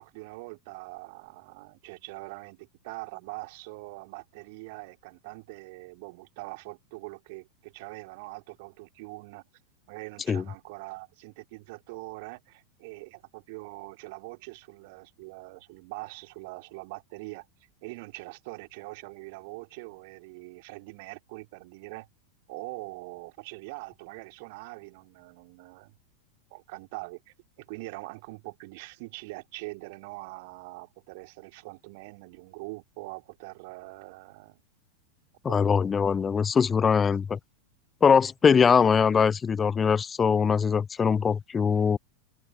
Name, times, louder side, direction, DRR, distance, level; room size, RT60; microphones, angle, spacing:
voice 1, 0.0-9.5 9.9-17.5 17.8-22.1 22.5-25.9 26.5-34.6 35.5-35.7, right 25 dB, 50° right, 3.4 m, -43 dB
voice 2, 35.4-37.4 38.0-42.0, left 6 dB, 20° left, 0.8 m, -22 dB
figure-of-eight pair, 90°, 0 cm